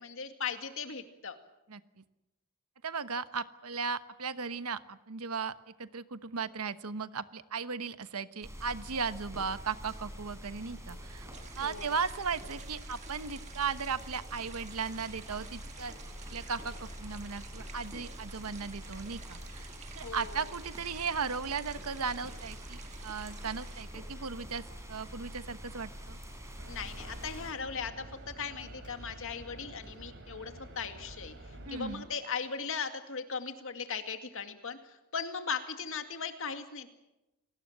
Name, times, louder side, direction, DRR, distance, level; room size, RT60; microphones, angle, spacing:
voice 1, 0.0-1.4 11.6-11.9 20.0-20.5 26.7-36.9, left 6 dB, 60° left, 7 dB, 2.3 m, -38 dB
voice 2, 2.8-5.5 5.8-11.3 11.6-15.9 16.3-19.7 19.9-24.6 24.9-26.2 31.6-32.0, right 5 dB, 80° right, 12 dB, 1.1 m, -36 dB
sound 1, 8.4-27.5, equal, 15° right, 5.5 m, -45 dB
sound 2, 11.3-23.8, right 6 dB, 30° right, 1.9 m, -53 dB
sound 3, 26.6-32.1, right 1 dB, 55° right, 4.8 m, -48 dB
28.5 x 19.5 x 7.5 m, 0.96 s
head